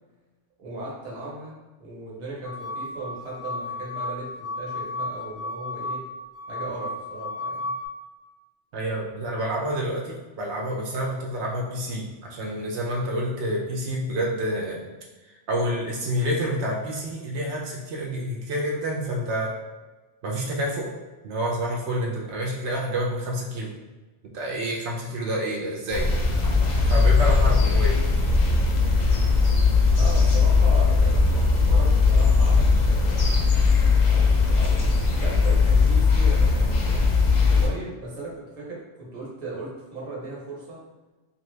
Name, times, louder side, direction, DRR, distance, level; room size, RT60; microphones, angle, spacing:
voice 1, 0.6-6.0 6.5-7.7 27.3-27.4 29.9-33.5 34.0-37.1 37.5-40.8, right 2 dB, 40° right, -5 dB, 0.9 m, -37 dB
sound 1, 2.4-7.9, left 2 dB, 90° left, 0.9 m, -33 dB
voice 2, 8.7-14.8 15.5-19.5 20.2-20.9 21.2-23.7 24.3-26.1 26.9-28.0, equal, 80° right, -2 dB, 0.9 m, -28 dB
sound 2, 25.9-37.7, left 4 dB, 50° left, 0.5 m, -19 dB
2.7 x 2.5 x 3.1 m, 1.2 s
omnidirectional pair, 1.1 m